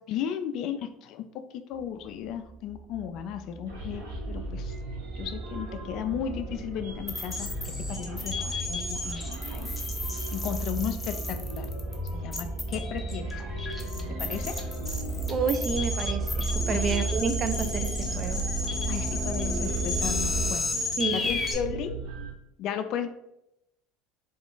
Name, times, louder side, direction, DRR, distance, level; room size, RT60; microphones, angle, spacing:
voice 1, 0.1-4.7 5.2-9.7 10.3-11.7 12.1-13.4 14.1-14.6 16.7-16.9 18.9-20.7 21.1-22.0 22.6-23.1, left 9 dB, 60° left, 9 dB, 0.3 m, -35 dB
sound 1, 2.3-20.5, right 2 dB, 25° right, 1.4 m, -35 dB
sound 2, 3.7-22.3, right 2 dB, 85° right, 0.9 m, -38 dB
sound 3, 7.1-21.5, left 3 dB, 20° left, 0.7 m, -34 dB
voice 2, 15.3-18.4 21.0-21.4, right 5 dB, 40° right, 9 dB, 0.3 m, -30 dB
2.3 x 2.3 x 3.6 m, 0.84 s
hypercardioid pair, 85°, 0 cm